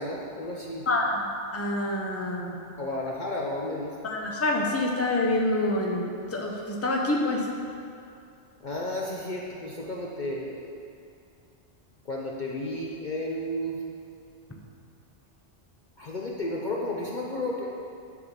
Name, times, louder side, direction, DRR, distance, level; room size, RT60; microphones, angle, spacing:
voice 1, 0.0-0.9 2.8-3.9 8.6-10.7 12.1-13.8 16.0-17.7, left 1 dB, 45° left, -2 dB, 0.8 m, -32 dB
voice 2, 0.9-2.6 4.0-7.4, left 2 dB, 15° left, 0 dB, 0.8 m, -27 dB
9.7 x 5.8 x 5.8 m, 2.5 s
omnidirectional pair, 1.2 m